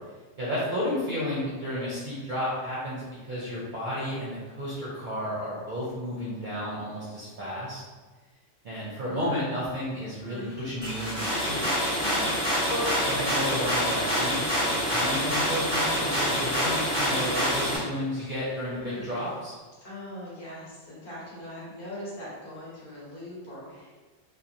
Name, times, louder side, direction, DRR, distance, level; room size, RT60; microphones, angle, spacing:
voice 1, 0.4-7.8 8.6-11.7 13.0-19.6, equal, 50° right, -7 dB, 0.6 m, -32 dB
Human voice, 8.8-9.4 10.0-11.8 12.2-14.2 14.5-15.0 15.2-15.5 15.9-19.6, left 1 dB, 85° left, 1.1 m, -41 dB
sound 1, 10.8-17.8, equal, 5° left, 0.8 m, -26 dB
voice 2, 12.0-12.4 19.8-24.0, equal, 50° left, -7 dB, 1.0 m, -41 dB
2.9 x 2.2 x 2.5 m, 1.3 s
omnidirectional pair, 1.2 m